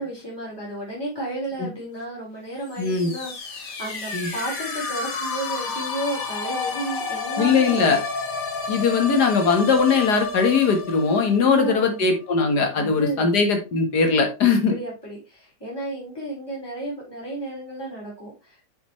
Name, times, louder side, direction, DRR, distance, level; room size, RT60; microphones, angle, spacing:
voice 1, 0.0-8.0 11.4-12.0 12.7-13.3 14.7-18.6, right 1 dB, 15° left, -6 dB, 4.4 m, -33 dB
sound 1, 2.7-12.4, left 4 dB, 55° left, 1.9 m, -31 dB
voice 2, 2.8-3.1 4.1-4.3 7.4-8.0 8.7-14.7, left 5 dB, 70° left, 5 dB, 2.1 m, -20 dB
7.7 x 6.5 x 3.2 m, 0.28 s
omnidirectional pair, 1.8 m